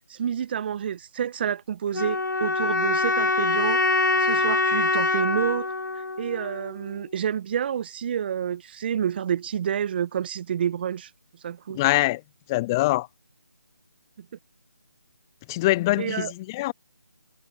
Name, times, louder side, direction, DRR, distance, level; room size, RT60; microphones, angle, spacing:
voice 1, 0.1-3.8 4.2-5.7 5.9-11.1 11.4-11.8 14.2-14.3 16.0-16.3, right 8 dB, 30° right, 1.5 m, -29 dB
sound 1, 1.9-7.0, left 3 dB, 85° left, 0.7 m, -24 dB
voice 2, 11.7-12.2 12.5-13.1 15.5-16.7, left 19 dB, 10° left, 0.4 m, -23 dB
figure-of-eight pair, 155°, 10 cm